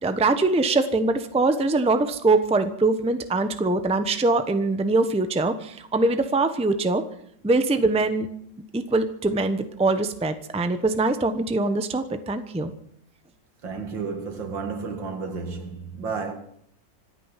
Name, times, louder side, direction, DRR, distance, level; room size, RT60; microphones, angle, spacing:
voice 1, 0.0-7.0 7.4-8.3 8.7-12.7, right 3 dB, 5° right, 0.7 m, -23 dB
voice 2, 13.6-16.3, right 4 dB, 80° right, 2.7 m, -32 dB
25.5 x 9.5 x 5.8 m
omnidirectional pair, 2.0 m